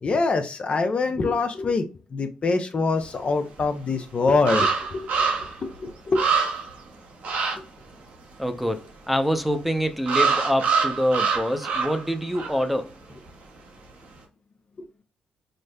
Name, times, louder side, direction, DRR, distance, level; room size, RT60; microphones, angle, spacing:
voice 1, 0.0-1.9 2.1-5.1 5.6-6.2, left 3 dB, 45° left, 0.5 m, -24 dB
sound 1, 3.6-3.7 4.5-5.6 5.9-6.0 6.2-6.8 7.2-7.6 10.1-12.1 12.3-12.6, right 5 dB, 70° right, 0.9 m, -24 dB
voice 2, 8.4-12.9, equal, 5° right, 0.6 m, -25 dB
5.0 x 2.0 x 2.2 m
supercardioid pair, 55°, 3 cm